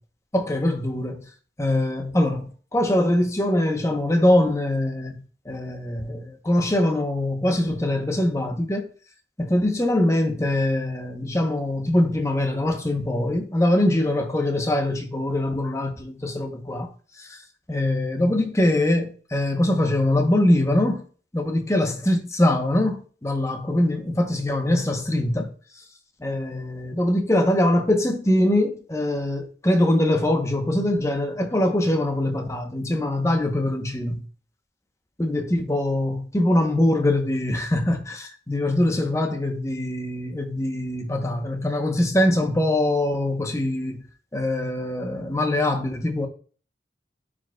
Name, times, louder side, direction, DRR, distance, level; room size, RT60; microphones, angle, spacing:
voice 1, 0.3-1.3 1.6-8.9 9.4-16.9 17.7-21.0 21.3-25.5 26.2-34.2 35.2-44.0 44.3-46.3, left 1 dB, 15° left, 0.8 m, -23 dB
9.9 x 5.1 x 2.3 m
head